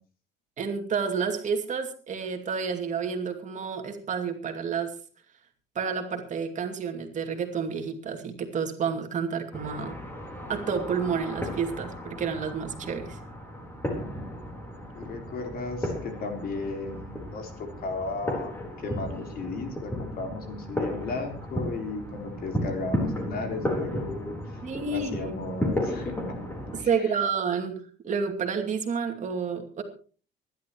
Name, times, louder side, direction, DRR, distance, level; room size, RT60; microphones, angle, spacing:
voice 1, 0.6-4.9 5.7-10.0 10.5-13.2 24.6-25.4 26.7-29.8, right 6 dB, 40° right, 5 dB, 2.5 m, -30 dB
sound 1, 9.5-26.8, equal, 10° left, 4.0 m, -34 dB
voice 2, 14.9-17.5 17.8-24.4 24.9-26.3 26.8-27.2, left 3 dB, 50° left, 4 dB, 3.8 m, -35 dB
25.0 x 11.5 x 3.1 m, 0.39 s
cardioid pair, 140°, 19 cm